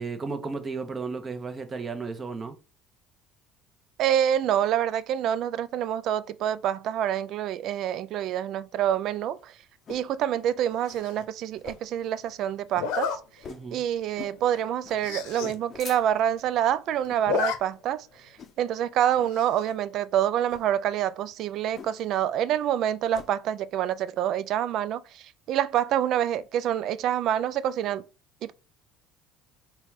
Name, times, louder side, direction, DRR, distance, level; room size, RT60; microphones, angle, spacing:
voice 1, 0.0-2.6 13.5-13.8, right 4 dB, 30° right, 0.8 m, -34 dB
voice 2, 4.0-9.5 9.9-13.1 13.7-18.1 18.6-28.0 28.4-28.5, right 10 dB, 60° right, 0.3 m, -27 dB
sound 1, 8.9-10.1 10.5-10.6 10.9-11.1 11.6-12.0 12.3-12.4 12.7-12.9 13.4-13.7 14.1-14.4 14.8-15.0 15.5-16.3 17.0-17.3 17.7-17.9 18.4-18.8 19.2-19.4 20.4-20.7 21.7-22.2 22.5-23.3, left 6 dB, 40° left, 0.6 m, -45 dB
Zipper (clothing), 10.9-11.2 12.8-13.2 13.7-13.9 14.2-14.3 14.6-14.7 14.9-15.6 15.9-16.0 16.2-16.7 17.1-17.6 17.9-18.0 19.3-19.7, left 6 dB, 80° left, 0.8 m, -31 dB
4.1 x 2.3 x 4.7 m
supercardioid pair, 100°, 0 cm